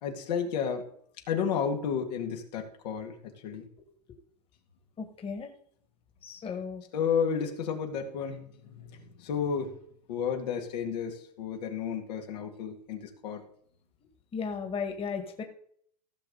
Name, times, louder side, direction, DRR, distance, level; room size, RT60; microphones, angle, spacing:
voice 1, 0.0-0.8 1.3-3.7 6.9-9.7 10.1-13.4, left 7 dB, 75° left, 2 dB, 2.3 m, -32 dB
voice 2, 5.0-5.5 6.2-6.8 14.3-15.4, left 5 dB, 25° left, 5 dB, 1.9 m, -35 dB
16.0 x 6.7 x 4.0 m, 0.63 s
hypercardioid pair, 105°, 21 cm